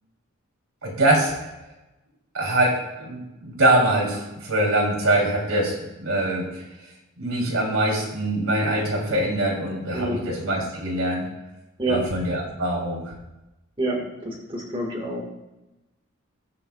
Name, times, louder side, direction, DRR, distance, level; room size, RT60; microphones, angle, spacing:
voice 1, 0.8-1.3 2.3-6.6 7.2-11.3 11.9-13.1, right 1 dB, 75° right, -1 dB, 2.9 m, -23 dB
voice 2, 13.8-15.3, right 2 dB, 25° right, -1 dB, 1.6 m, -27 dB
20.0 x 6.9 x 2.3 m, 0.99 s
head